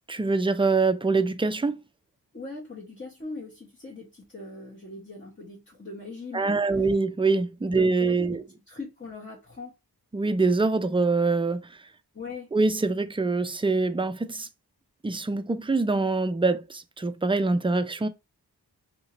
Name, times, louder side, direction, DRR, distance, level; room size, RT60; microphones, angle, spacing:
voice 1, 0.1-1.8 6.3-8.4 10.1-11.7 12.5-14.5 15.0-18.1, right 3 dB, 15° right, 0.3 m, -24 dB
voice 2, 2.3-6.6 7.7-9.7 12.1-12.5, left 3 dB, 30° left, 0.9 m, -41 dB
2.9 x 2.7 x 2.9 m
wide cardioid pair, 55°, 40 cm